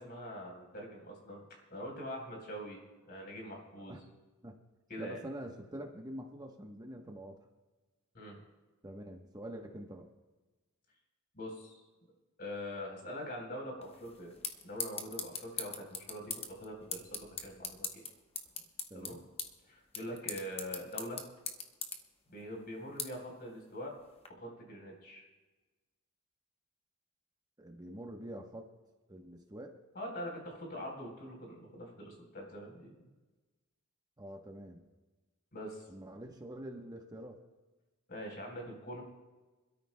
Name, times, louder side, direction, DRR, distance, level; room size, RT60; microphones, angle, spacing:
voice 1, 0.0-4.0 4.9-5.2 8.1-8.4 11.3-11.7 12.4-14.3 14.6-18.0 18.9-19.2 19.7-21.2 22.3-23.9 24.3-25.2 30.0-33.1 35.5-35.8 38.1-39.0, equal, 45° left, 1 dB, 3.9 m, -44 dB
voice 2, 5.0-7.4 8.8-10.1 18.9-19.3 27.6-28.7 29.1-29.7 34.2-34.8 35.9-37.4, right 1 dB, 20° right, 2 dB, 1.0 m, -46 dB
sound 1, 13.8-24.3, left 5 dB, 30° left, 1.0 m, -43 dB
26.5 x 13.0 x 2.2 m, 1.2 s
head